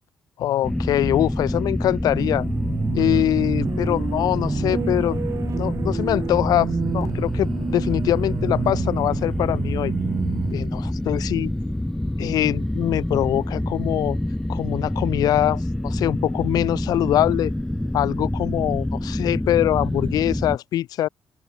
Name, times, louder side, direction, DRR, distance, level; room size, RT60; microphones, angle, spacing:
voice 1, 0.4-2.5 2.9-5.2 5.6-9.9 10.5-11.5 12.2-14.2 14.5-17.5 17.9-21.1, left 13 dB, 80° left, 2.0 m, -23 dB
sound 1, 0.6-20.6, left 1 dB, 5° left, 0.8 m, -27 dB
sound 2, 2.2-12.0, right 8 dB, 55° right, 6.4 m, -30 dB
open air
cardioid pair, 120°, 7 cm